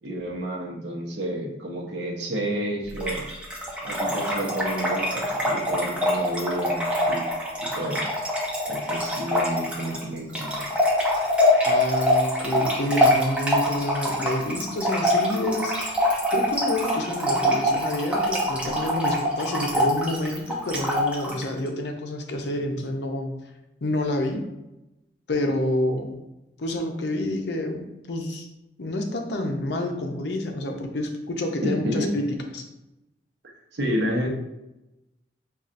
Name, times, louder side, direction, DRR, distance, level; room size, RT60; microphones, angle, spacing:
voice 1, 0.0-3.3 3.8-7.2 7.6-8.1 8.7-10.7 31.6-32.2 33.4-34.3, right 1 dB, 75° right, -1 dB, 0.8 m, -30 dB
Trickle dribble / Fill (with liquid), 3.0-21.4, equal, 5° right, 0.6 m, -24 dB
voice 2, 11.6-15.9 16.3-23.4 23.8-24.4 25.3-26.2 26.6-28.5 28.8-32.2 32.5-32.6, left 1 dB, 70° left, 3 dB, 0.6 m, -28 dB
5.3 x 2.4 x 2.5 m, 0.95 s
head